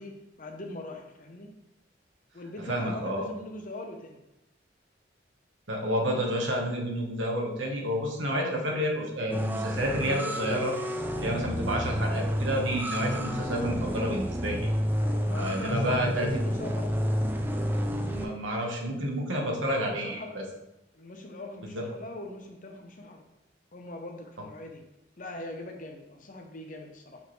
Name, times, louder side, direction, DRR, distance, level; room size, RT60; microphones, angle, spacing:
voice 1, 0.0-1.5 2.3-4.2 6.1-6.2 8.3-8.6 15.0-17.0 19.8-20.4 20.9-23.2 23.7-24.8 25.2-27.2, left 2 dB, 45° left, 3 dB, 0.8 m, -41 dB
voice 2, 2.7-3.2 5.7-10.7 11.2-14.7 15.3-16.3 18.1-20.4 21.7-21.8, equal, 75° right, 0 dB, 1.2 m, -30 dB
sound 1, 9.3-18.2, equal, 10° right, 0.4 m, -30 dB
6.5 x 4.7 x 3.2 m, 0.88 s
head